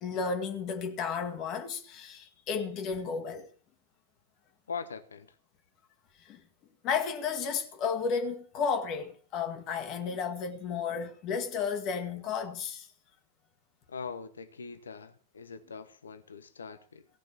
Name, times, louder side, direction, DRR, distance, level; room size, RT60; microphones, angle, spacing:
voice 1, 0.0-3.5 6.3-6.4 6.8-12.9, left 6 dB, 35° left, 1.9 m, -33 dB
voice 2, 4.7-5.4 13.9-17.0, left 5 dB, 70° left, 1.1 m, -42 dB
17.0 x 6.1 x 8.5 m
figure-of-eight pair, 90°, 0 cm